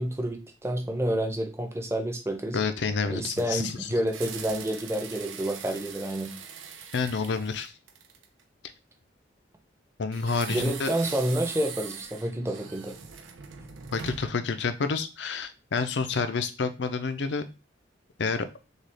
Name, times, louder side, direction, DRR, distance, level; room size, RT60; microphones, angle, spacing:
voice 1, 0.0-2.6 3.1-6.3 10.5-13.0, right 1 dB, 15° right, 5 dB, 0.7 m, -29 dB
voice 2, 2.5-3.9 6.9-7.7 10.0-10.9 13.9-17.4 18.2-18.5, left 4 dB, 65° left, 10 dB, 0.5 m, -29 dB
sound 1, 3.0-8.4 10.1-14.5, right 6 dB, 90° right, 0.7 m, -42 dB
6.4 x 2.4 x 3.4 m, 0.29 s
head